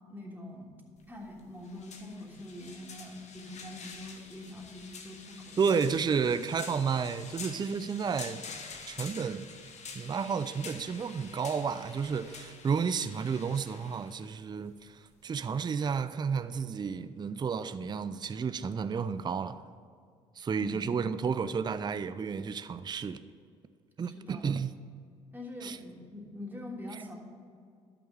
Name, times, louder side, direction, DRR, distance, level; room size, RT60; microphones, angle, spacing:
voice 1, 0.1-0.7 1.1-6.0 20.5-20.9 24.0-24.5 25.3-27.2, left 1 dB, 10° right, -2 dB, 3.1 m, -44 dB
sound 1, 1.0-15.6, left 5 dB, 50° left, 1.4 m, -47 dB
voice 2, 5.6-8.4 8.9-9.5 9.9-19.6 20.4-23.2 24.0-24.7 25.6-25.8 26.9-27.0, right 6 dB, 30° right, 13 dB, 0.5 m, -31 dB
12.0 x 5.9 x 6.9 m, 2.2 s
hypercardioid pair, 55°, 15 cm